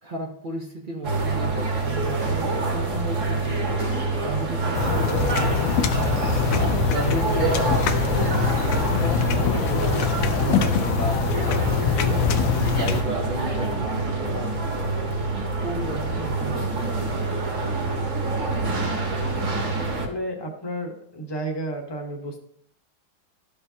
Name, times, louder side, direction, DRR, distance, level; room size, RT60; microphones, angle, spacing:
voice 1, 0.0-6.2 6.5-8.4 9.0-11.2 11.6-15.0 15.3-17.7, right 2 dB, 85° right, 0 dB, 0.4 m, -34 dB
sound 1, 1.0-20.1, right 3 dB, 45° right, 1.6 m, -26 dB
sound 2, 4.7-13.0, left 8 dB, 80° left, 1.4 m, -24 dB
voice 2, 19.9-22.4, right 1 dB, 20° left, 2 dB, 0.7 m, -32 dB
13.0 x 5.4 x 2.8 m, 0.66 s
omnidirectional pair, 2.1 m